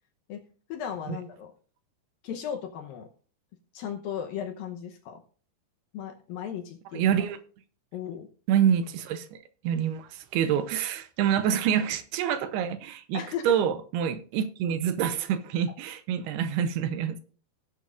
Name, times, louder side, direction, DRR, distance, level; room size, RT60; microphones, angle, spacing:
voice 1, 0.7-1.5 2.2-3.1 3.7-5.2 5.9-7.1 7.9-8.3 13.1-13.5, left 8 dB, 75° left, 2.3 m, -36 dB
voice 2, 6.9-7.4 8.5-17.2, right 9 dB, 80° right, 2.7 m, -27 dB
18.0 x 8.6 x 2.5 m
omnidirectional pair, 4.8 m